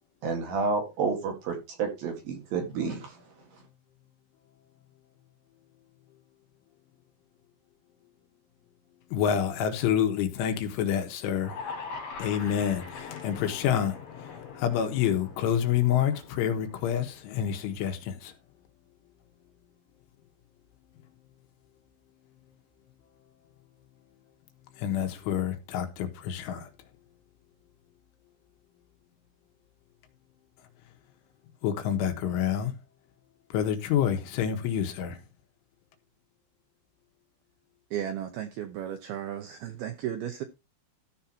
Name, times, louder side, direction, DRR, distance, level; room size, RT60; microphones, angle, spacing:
voice 1, 0.2-3.2, right 4 dB, 55° right, 3.3 m, -30 dB
voice 2, 9.1-11.6 12.2-14.0 14.6-18.3 24.8-26.7 31.6-32.7 33.5-35.2, left 9 dB, 80° left, 3.9 m, -27 dB
sound 1, 11.4-17.6, left 5 dB, 50° left, 5.1 m, -42 dB
voice 3, 37.9-40.4, right 10 dB, 80° right, 2.2 m, -34 dB
14.0 x 5.6 x 4.4 m
omnidirectional pair, 5.6 m